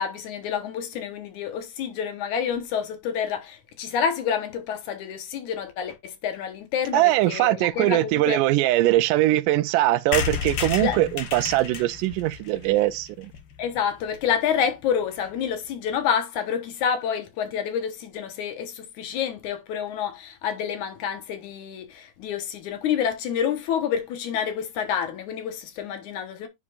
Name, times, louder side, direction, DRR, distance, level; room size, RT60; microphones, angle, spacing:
voice 1, 0.0-8.4 10.8-11.0 13.6-26.5, left 8 dB, 70° left, 2.5 m, -28 dB
voice 2, 6.9-13.3, right 16 dB, 85° right, 2.1 m, -21 dB
sound 1, 10.1-13.8 14.2-14.3 14.5-14.6 14.8-14.9 15.1-15.4, left 7 dB, 85° left, 1.0 m, -32 dB
9.8 x 5.1 x 2.4 m
omnidirectional pair, 3.7 m